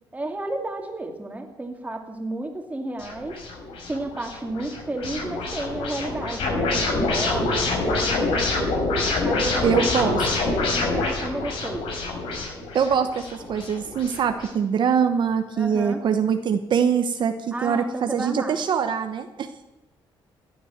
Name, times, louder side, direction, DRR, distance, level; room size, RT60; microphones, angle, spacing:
voice 1, 0.1-3.4 3.9-8.8 9.2-9.9 10.7-11.9 15.6-16.0 17.5-18.6, right 2 dB, 15° right, 3 dB, 2.8 m, -32 dB
sound 1, 3.0-14.5, left 2 dB, 85° left, 6.3 m, -26 dB
voice 2, 9.6-10.2 12.7-19.6, right 7 dB, 60° right, 7 dB, 1.1 m, -23 dB
16.5 x 10.0 x 7.4 m, 1.0 s
cardioid pair, 105°, 9 cm